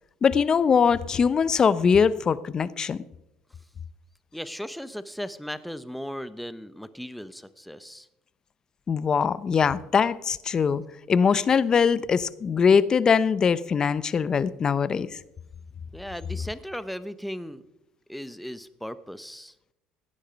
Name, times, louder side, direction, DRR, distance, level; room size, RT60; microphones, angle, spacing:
voice 1, 0.2-3.0 8.9-10.8 11.1-15.2, left 6 dB, 35° left, 18 dB, 0.7 m, -22 dB
voice 2, 4.3-8.1 15.9-17.6 18.1-19.5, equal, ahead, 14 dB, 0.8 m, -37 dB
16.0 x 9.9 x 5.2 m, 0.87 s
supercardioid pair, 100°, 2 cm